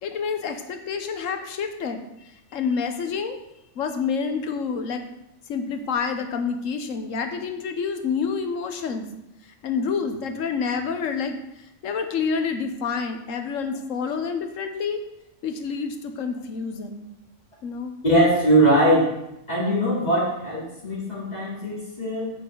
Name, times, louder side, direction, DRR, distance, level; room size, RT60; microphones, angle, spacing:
voice 1, 0.0-3.4 3.8-5.1 5.5-9.1 9.6-11.4 11.8-15.0 15.4-17.1 17.6-18.0, left 5 dB, 85° left, 7 dB, 1.3 m, -28 dB
voice 2, 18.0-19.1 19.5-22.3, right 1 dB, 30° left, -6 dB, 3.1 m, -21 dB
8.9 x 7.5 x 3.8 m, 0.86 s
omnidirectional pair, 1.3 m